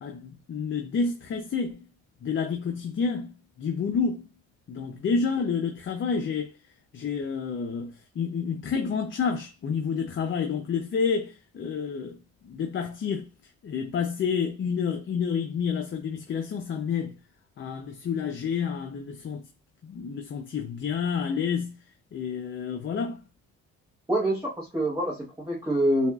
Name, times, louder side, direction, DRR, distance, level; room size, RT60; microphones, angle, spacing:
voice 1, 0.0-1.8 2.2-4.3 4.7-6.5 6.9-12.2 12.4-13.3 13.6-17.2 17.6-19.5 19.8-21.8 22.1-23.2, left 6 dB, 40° left, 0.6 m, -29 dB
voice 2, 24.1-26.1, right 1 dB, 10° right, 1.0 m, -26 dB
6.8 x 2.4 x 2.3 m
cardioid pair, 125°, 29 cm